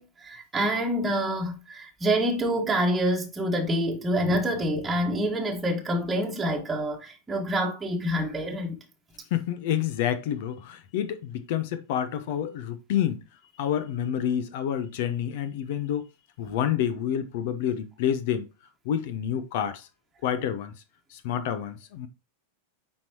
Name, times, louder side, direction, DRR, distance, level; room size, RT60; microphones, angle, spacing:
voice 1, 0.0-8.8, equal, 15° right, 1.4 m, -27 dB
voice 2, 9.3-13.2 13.6-16.1 16.4-18.5 18.8-19.9 20.2-20.7 21.1-22.1, left 9 dB, 50° left, 0.9 m, -28 dB
8.7 x 4.6 x 3.0 m
figure-of-eight pair, 90°, 0 cm